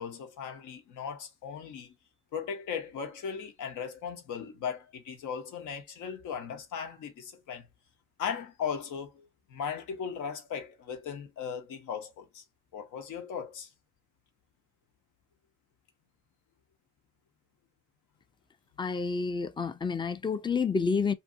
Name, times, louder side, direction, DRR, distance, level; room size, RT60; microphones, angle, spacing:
voice 1, 0.0-1.9 2.3-7.7 8.2-12.4 12.7-13.7, left 7 dB, 80° left, 0.9 m, -37 dB
voice 2, 18.8-21.1, left 5 dB, 15° left, 0.4 m, -29 dB
2.7 x 2.6 x 2.6 m
cardioid pair, 90°, 30 cm